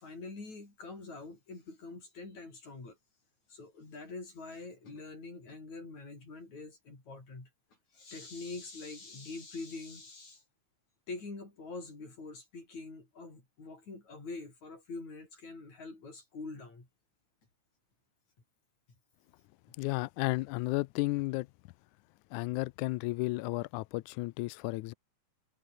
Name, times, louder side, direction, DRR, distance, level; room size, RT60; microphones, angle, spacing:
voice 1, 0.0-3.0 3.5-7.5 7.9-10.4 11.1-16.9, left 3 dB, 60° left, 9.3 m, -45 dB
voice 2, 19.8-21.5 22.3-24.9, left 21 dB, 80° left, 1.8 m, -33 dB
omnidirectional pair, 3.8 m